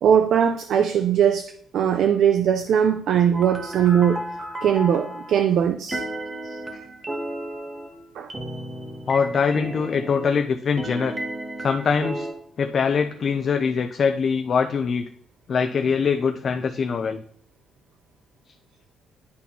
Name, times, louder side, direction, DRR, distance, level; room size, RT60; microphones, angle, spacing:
voice 1, 0.0-4.2 4.6-6.0 8.2-8.3, right 8 dB, 60° right, 8 dB, 0.4 m, -20 dB
sound 1, 3.3-5.4 5.9-10.5 10.8-12.3, right 1 dB, 20° right, 0.8 m, -33 dB
voice 2, 9.1-11.1 11.6-12.3 12.6-15.0 15.5-17.2, left 6 dB, 40° left, 6 dB, 0.3 m, -23 dB
10.5 x 4.1 x 2.8 m, 0.64 s
cardioid pair, 160°, 0 cm